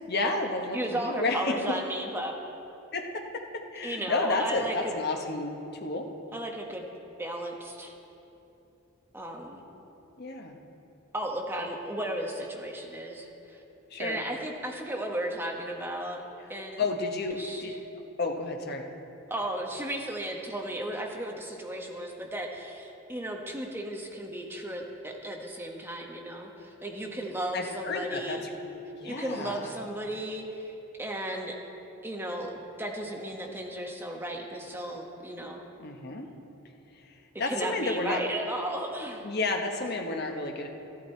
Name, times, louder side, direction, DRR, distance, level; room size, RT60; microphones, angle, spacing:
voice 1, 0.1-1.6 2.9-5.5 5.8-6.1 10.2-10.6 13.9-14.2 16.8-17.7 18.2-18.9 27.5-29.7 35.8-36.3 37.4-38.2 39.2-40.7, left 2 dB, 50° left, 3 dB, 1.0 m, -31 dB
voice 2, 0.7-2.3 3.8-4.9 6.3-6.8 7.2-7.9 9.1-9.6 11.1-13.6 14.0-16.2 16.5-16.8 17.3-17.8 19.3-28.4 29.0-31.6 32.0-35.6 37.5-39.3, right 1 dB, 10° right, 0 dB, 1.0 m, -35 dB
13.5 x 11.0 x 4.4 m, 3.0 s
head